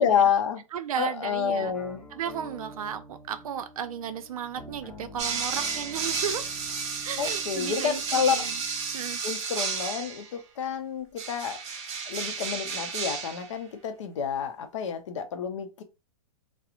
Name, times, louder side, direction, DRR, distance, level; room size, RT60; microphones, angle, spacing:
voice 1, 0.0-0.6 1.0-2.1 7.2-8.5 9.2-11.6 12.1-15.8, left 7 dB, 60° left, 0.5 m, -28 dB
voice 2, 0.7-1.7 2.1-6.5 7.0-8.6 8.9-9.2, right 8 dB, 80° right, 0.4 m, -34 dB
sound 1, 1.7-9.2, equal, 10° left, 0.7 m, -48 dB
sound 2, 5.2-10.3 11.2-13.5, right 5 dB, 55° right, 0.9 m, -32 dB
2.8 x 2.0 x 2.4 m
hypercardioid pair, 165°, 18 cm